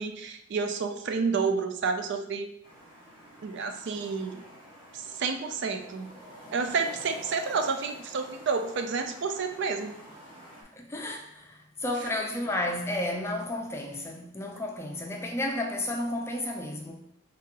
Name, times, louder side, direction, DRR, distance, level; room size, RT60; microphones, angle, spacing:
voice 1, 0.0-2.5 3.4-4.4 4.9-6.1 6.5-9.9, right 5 dB, 55° right, 0.4 m, -30 dB
sound 1, 2.6-10.6, equal, 25° right, 1.3 m, -48 dB
voice 2, 10.7-17.0, left 1 dB, 10° left, 0.4 m, -32 dB
3.5 x 2.9 x 3.7 m
head